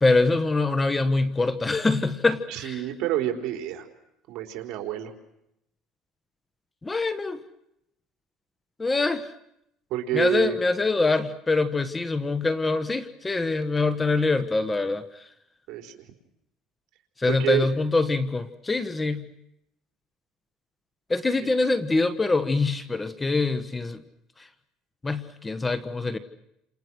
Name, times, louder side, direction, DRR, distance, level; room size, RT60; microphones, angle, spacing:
voice 1, 0.0-2.8 6.8-7.4 8.8-9.3 10.1-15.0 17.2-19.2 21.1-24.0 25.0-26.2, left 3 dB, 15° left, 12 dB, 1.4 m, -24 dB
voice 2, 2.5-3.9 4.3-5.1 9.9-10.5 15.7-16.0 17.3-17.7 21.4-21.5, right 12 dB, 65° right, 4 dB, 4.4 m, -28 dB
30.0 x 27.5 x 6.4 m, 0.80 s
cardioid pair, 120°, 0 cm